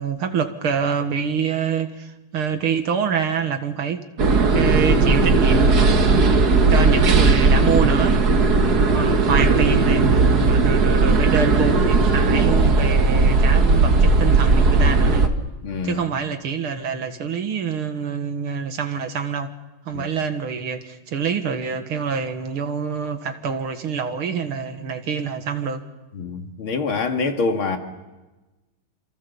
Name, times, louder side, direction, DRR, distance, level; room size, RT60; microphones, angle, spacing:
voice 1, 0.0-4.0 4.5-5.8 6.7-8.2 8.9-10.0 10.5-15.3 15.8-19.5 19.9-25.8, right 6 dB, 85° right, 2.6 m, -25 dB
sound 1, 4.2-15.3, right 3 dB, 50° right, 2.0 m, -17 dB
voice 2, 8.5-8.9 15.6-16.0 19.9-20.0 26.1-27.8, left 4 dB, 75° left, 3.2 m, -26 dB
28.0 x 27.0 x 7.1 m
omnidirectional pair, 2.3 m